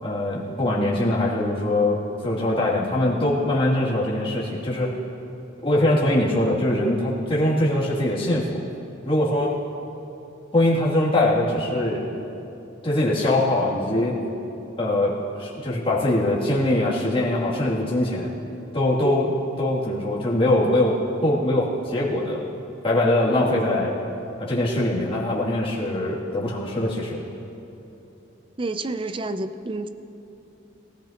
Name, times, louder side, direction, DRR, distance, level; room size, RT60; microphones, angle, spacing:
voice 1, 0.0-5.0 5.6-8.6 9.0-9.5 10.5-12.1 12.8-14.3 14.8-18.3 18.7-22.5 22.8-23.9 24.4-27.2, left 1 dB, 30° left, -7 dB, 2.7 m, -22 dB
voice 2, 28.6-29.9, right 2 dB, 25° right, 10 dB, 0.5 m, -29 dB
23.0 x 15.0 x 3.0 m, 3.0 s
head